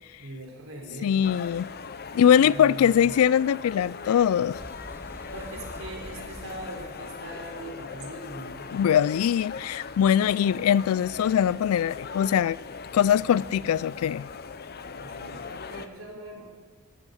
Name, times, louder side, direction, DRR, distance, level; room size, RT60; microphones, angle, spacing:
voice 1, 0.2-1.3 2.1-3.1 5.3-8.6 14.9-16.4, right 1 dB, 75° right, 3.4 m, -41 dB
voice 2, 1.0-1.7 2.1-4.6 8.7-12.6 12.9-14.3, left 9 dB, 80° left, 0.3 m, -22 dB
sound 1, 1.2-15.9, left 5 dB, 50° left, 0.7 m, -40 dB
sound 2, 4.5-11.9, right 1 dB, 10° right, 0.5 m, -49 dB
13.0 x 9.0 x 8.0 m
head